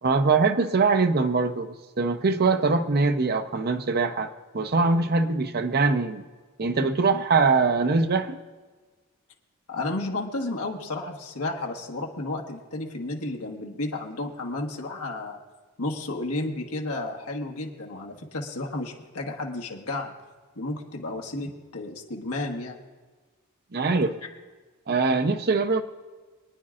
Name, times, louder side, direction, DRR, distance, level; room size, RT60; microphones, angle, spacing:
voice 1, 0.0-6.2 6.6-8.4 23.7-24.2 24.9-25.8, right 4 dB, 45° right, 9 dB, 0.7 m, -23 dB
voice 2, 9.7-15.4 15.8-20.1 20.6-22.8, left 2 dB, 85° left, 1 dB, 1.4 m, -32 dB
24.0 x 9.8 x 2.5 m, 1.4 s
head